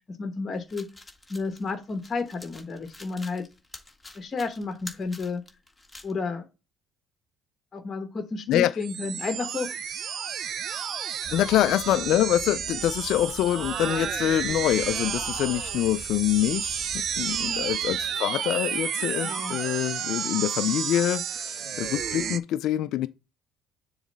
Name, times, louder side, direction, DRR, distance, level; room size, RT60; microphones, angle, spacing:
voice 1, 0.2-0.9 1.3-3.4 4.1-5.4 6.0-6.4 7.7-9.8 17.3-17.7 19.2-19.6, left 4 dB, 35° left, 1.1 m, -31 dB
sound 1, 0.5-6.1, left 2 dB, 10° left, 1.6 m, -47 dB
sound 2, 8.8-22.4, right 8 dB, 55° right, 0.6 m, -31 dB
sound 3, 11.2-18.2, right 2 dB, 25° right, 1.8 m, -45 dB
voice 2, 11.3-23.1, left 13 dB, 70° left, 0.3 m, -25 dB
7.1 x 3.1 x 5.2 m
supercardioid pair, 85°, 0 cm